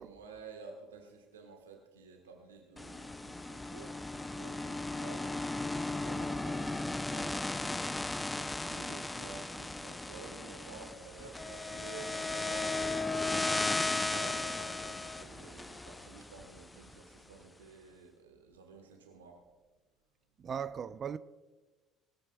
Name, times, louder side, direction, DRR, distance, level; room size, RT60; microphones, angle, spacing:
voice 1, 0.0-5.4 5.9-7.9 8.3-19.4, right 4 dB, 80° right, 1.3 m, -52 dB
sound 1, 2.8-16.9, left 2 dB, 15° left, 0.6 m, -36 dB
voice 2, 20.4-21.2, right 7 dB, 40° right, 0.5 m, -38 dB
20.5 x 13.0 x 2.3 m
figure-of-eight pair, 55°, 0 cm